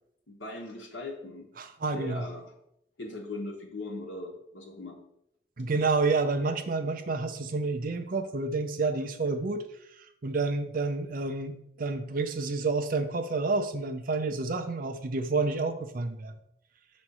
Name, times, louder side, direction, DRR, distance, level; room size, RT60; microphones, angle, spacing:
voice 1, 0.3-1.5 1.9-2.4 3.0-5.0, left 2 dB, 80° left, -1 dB, 1.1 m, -39 dB
voice 2, 1.6-2.3 5.6-9.6 10.0-16.3, right 3 dB, 50° right, 8 dB, 0.6 m, -29 dB
6.1 x 3.1 x 5.4 m, 0.77 s
head